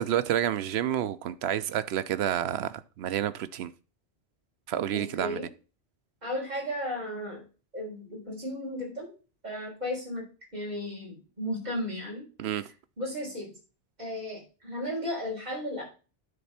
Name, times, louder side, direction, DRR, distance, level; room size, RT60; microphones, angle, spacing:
voice 1, 0.0-3.7 4.7-5.4 12.4-12.6, right 10 dB, 80° right, 15 dB, 0.9 m, -29 dB
voice 2, 4.9-5.5 6.2-7.4 7.7-9.1 9.4-10.3 10.5-12.3 13.0-13.5 14.0-15.8, left 1 dB, 40° right, -3 dB, 4.1 m, -34 dB
10.0 x 4.3 x 5.6 m, 0.34 s
omnidirectional pair, 1.1 m